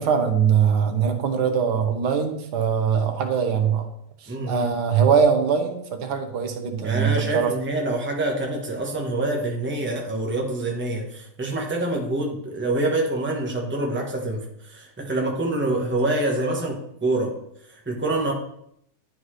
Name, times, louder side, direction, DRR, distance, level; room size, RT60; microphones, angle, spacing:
voice 1, 0.0-3.9 4.2-7.5, right 7 dB, 80° right, 5 dB, 1.4 m, -22 dB
voice 2, 4.3-4.7 6.8-17.4 17.7-18.3, right 2 dB, 10° right, 0 dB, 0.9 m, -26 dB
11.0 x 4.0 x 3.2 m, 0.73 s
omnidirectional pair, 1.7 m